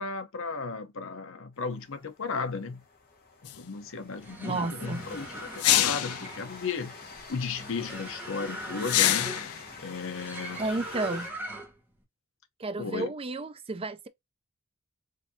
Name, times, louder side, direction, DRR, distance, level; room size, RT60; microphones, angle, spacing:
voice 1, 0.0-2.8 3.5-6.9 7.3-9.4 9.8-10.6 12.8-13.1, left 4 dB, 60° left, 0.8 m, -35 dB
Train, 1.6-11.3, left 4 dB, 45° left, 1.4 m, -47 dB
sound 1, 3.5-3.6 5.6-6.3 8.8-9.6, left 13 dB, 80° left, 0.4 m, -24 dB
sound 2, 4.1-11.9, right 1 dB, 10° right, 1.1 m, -40 dB
voice 2, 4.4-5.0 10.6-11.3 12.6-14.1, right 3 dB, 25° right, 0.4 m, -32 dB
5.0 x 2.6 x 2.7 m
head